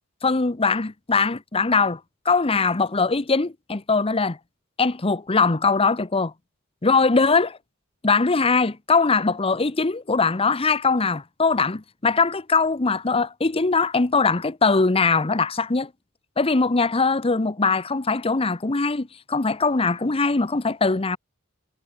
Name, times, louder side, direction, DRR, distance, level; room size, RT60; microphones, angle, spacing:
voice 1, 0.2-2.0 2.2-4.4 4.8-6.3 6.8-7.6 8.0-15.9 16.4-21.2, left 4 dB, 25° left, 0.8 m, -21 dB
head